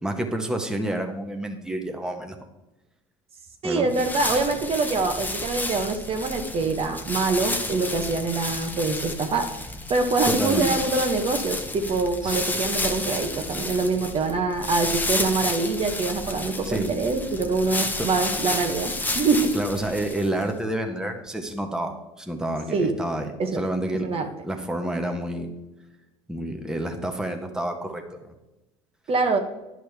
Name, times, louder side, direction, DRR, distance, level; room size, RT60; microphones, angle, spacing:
voice 1, 0.0-2.4 3.6-3.9 10.2-10.7 12.2-12.4 16.6-16.9 18.0-18.1 19.5-25.5 26.3-28.3, right 1 dB, 5° right, 3 dB, 1.2 m, -29 dB
voice 2, 3.6-9.5 9.9-19.5 22.7-23.0 23.4-23.6 24.0-24.3 29.1-29.4, right 3 dB, 40° right, 5 dB, 1.1 m, -24 dB
sound 1, 3.9-20.4, left 2 dB, 10° left, 0.9 m, -31 dB
10.5 x 6.2 x 3.5 m, 1.0 s
hypercardioid pair, 80°, 15 cm